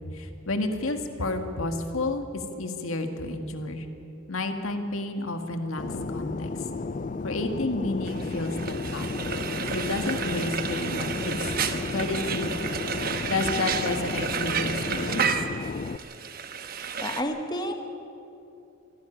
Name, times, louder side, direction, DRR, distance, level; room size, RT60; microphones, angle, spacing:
voice 1, 0.1-3.9 4.3-5.8 6.1-6.5 7.2-9.1 9.7-11.3 11.9-12.5 13.2-15.2, left 2 dB, 80° left, 6 dB, 1.9 m, -30 dB
Fixed-wing aircraft airplane, 5.8-16.0, left 3 dB, 35° left, 0.4 m, -33 dB
sound 1, 7.8-12.7, equal, 5° right, 3.5 m, -48 dB
Frying (food), 8.1-17.2, right 6 dB, 45° right, 1.1 m, -31 dB
voice 2, 17.0-17.7, equal, 20° left, 6 dB, 1.1 m, -30 dB
25.0 x 12.5 x 9.9 m, 2.8 s
head